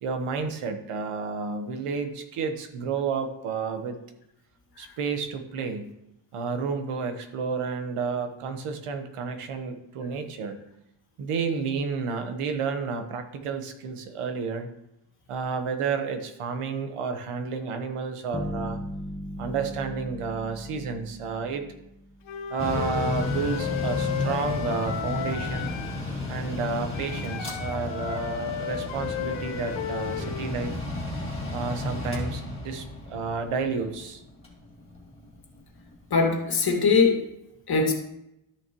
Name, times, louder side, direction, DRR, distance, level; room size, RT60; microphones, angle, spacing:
voice 1, 0.0-4.0 4.8-5.9 6.3-10.6 11.2-14.7 15.3-18.8 19.4-21.6 22.5-25.7 26.3-30.7 31.5-34.2, right 5 dB, 80° right, 7 dB, 1.3 m, -31 dB
sound 1, 18.3-22.3, equal, 10° right, 1.1 m, -37 dB
Wind instrument woodwind instrument, 22.3-26.1 26.9-30.6, left 9 dB, 65° left, 0.9 m, -34 dB
Mechanical fan, 22.6-35.9, left 2 dB, 10° left, 2.7 m, -33 dB
voice 2, 36.1-37.2 37.7-37.9, left 4 dB, 45° left, 2 dB, 2.0 m, -21 dB
13.0 x 6.5 x 3.0 m, 0.85 s
cardioid pair, 125°, 50 cm